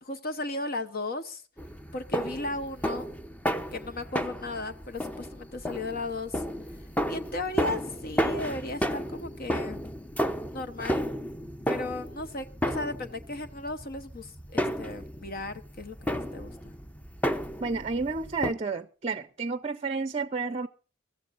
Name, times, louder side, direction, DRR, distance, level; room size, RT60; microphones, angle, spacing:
voice 1, 0.0-1.4 1.9-3.1 3.7-6.4 7.1-9.8 10.5-11.1 11.7-16.5, left 2 dB, 50° left, 1.0 m, -35 dB
sound 1, 1.6-18.5, equal, 10° left, 0.7 m, -33 dB
voice 2, 17.6-20.7, right 4 dB, 30° right, 0.5 m, -31 dB
23.0 x 14.0 x 2.5 m
head